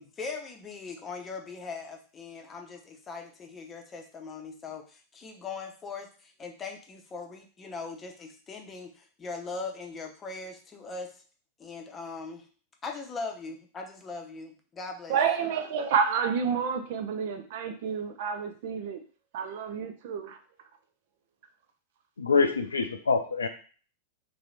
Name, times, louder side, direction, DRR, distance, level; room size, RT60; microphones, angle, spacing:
voice 1, 0.0-11.1 11.6-12.5 12.8-15.2, left 4 dB, 20° left, 3 dB, 0.8 m, -40 dB
voice 2, 15.1-19.0 19.3-20.4, right 6 dB, 50° right, 7 dB, 0.6 m, -29 dB
voice 3, 22.2-23.5, left 4 dB, 75° left, 7 dB, 0.4 m, -25 dB
3.1 x 2.9 x 4.0 m, 0.40 s
figure-of-eight pair, 90°, 0 cm